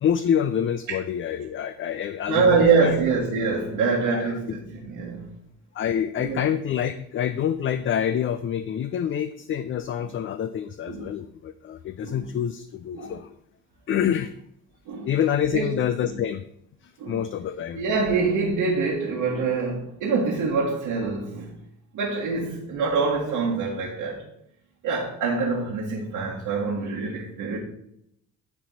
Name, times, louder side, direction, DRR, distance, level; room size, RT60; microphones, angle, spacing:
voice 1, 0.0-3.0 4.1-4.4 5.7-13.3 13.9-14.3 15.1-16.4 16.8-17.8, left 9 dB, 35° left, 0.4 m, -27 dB
voice 2, 2.3-5.3 6.2-6.4 10.0-10.1 10.9-11.2 12.0-12.3 12.9-13.2 13.9-14.1 14.9-15.1 15.5-15.7 16.0-16.2 17.0-17.2 17.7-21.5 21.9-24.2 24.8-27.6, right 4 dB, 65° right, 1.6 m, -25 dB
9.8 x 4.2 x 4.1 m
hypercardioid pair, 45°, 39 cm